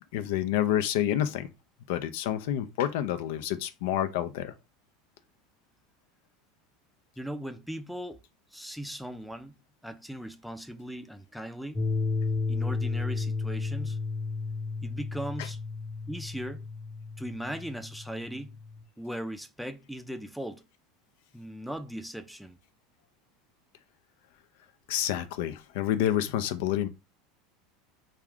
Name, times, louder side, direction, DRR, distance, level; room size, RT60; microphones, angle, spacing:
voice 1, 0.1-1.5 1.9-4.5 24.9-26.9, left 11 dB, 70° left, 0.3 m, -28 dB
voice 2, 7.2-8.2 8.5-9.5 9.8-11.8 12.5-14.0 14.8-15.6 16.1-16.7 17.2-18.5 19.0-20.6 21.3-22.6, equal, ahead, 0.4 m, -38 dB
sound 1, 11.7-18.8, left 4 dB, 15° left, 0.8 m, -33 dB
2.4 x 2.2 x 3.5 m
hypercardioid pair, 90°, 0 cm